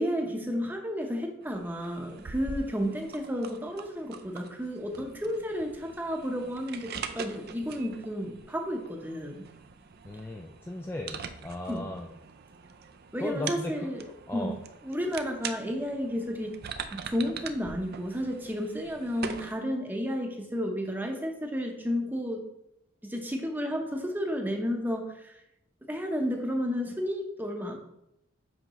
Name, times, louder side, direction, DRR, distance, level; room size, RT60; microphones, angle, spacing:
voice 1, 0.0-9.4 11.7-11.9 13.1-14.6 14.8-16.6 16.9-22.4 23.0-25.4 25.9-27.8, equal, 10° right, 3 dB, 0.8 m, -32 dB
sound 1, 1.4-19.5, right 6 dB, 50° right, 0.5 m, -43 dB
voice 2, 10.0-12.1 13.2-13.9 14.3-14.6, left 1 dB, 10° left, 1 dB, 0.3 m, -36 dB
7.8 x 5.2 x 3.0 m, 0.82 s
head